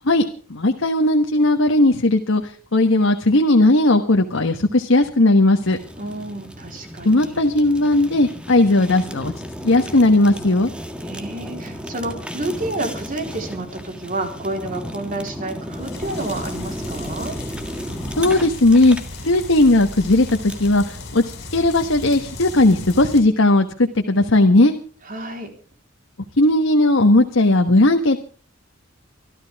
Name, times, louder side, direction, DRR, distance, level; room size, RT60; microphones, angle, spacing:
voice 1, 0.0-5.8 7.0-9.3 9.6-10.7 18.2-19.0 19.2-24.7 26.4-28.3, left 2 dB, 75° left, 5 dB, 1.3 m, -17 dB
Fire, 5.6-20.8, equal, 5° right, 1.7 m, -34 dB
voice 2, 6.0-7.5 11.0-17.4 25.1-25.5, right 2 dB, 45° right, 3 dB, 4.0 m, -30 dB
sound 1, 15.7-23.2, left 2 dB, 55° left, 6.2 m, -36 dB
26.0 x 13.0 x 3.6 m, 0.40 s
head